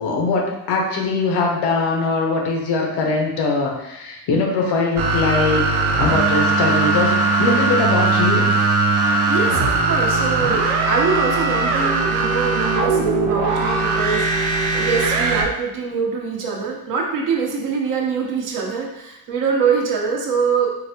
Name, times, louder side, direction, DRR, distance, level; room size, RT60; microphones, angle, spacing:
voice 1, 0.0-5.6 6.0-8.5, left 3 dB, 90° left, 1 dB, 0.8 m, -21 dB
sound 1, 5.0-15.4, right 3 dB, 90° right, 0.6 m, -19 dB
voice 2, 9.0-20.7, right 5 dB, 55° right, 0 dB, 0.8 m, -23 dB
3.9 x 2.1 x 2.7 m, 0.89 s
cardioid pair, 115°, 39 cm